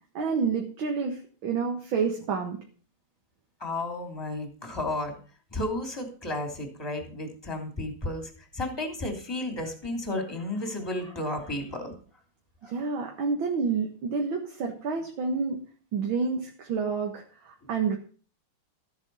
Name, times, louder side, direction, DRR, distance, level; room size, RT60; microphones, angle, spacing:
voice 1, 0.1-2.6 12.7-15.7 15.9-18.0, right 5 dB, 65° right, 2 dB, 2.2 m, -29 dB
voice 2, 3.6-5.2 5.5-11.9 12.6-12.7 17.6-17.7, left 1 dB, 10° left, 3 dB, 2.9 m, -33 dB
13.5 x 8.2 x 5.5 m, 0.41 s
omnidirectional pair, 2.3 m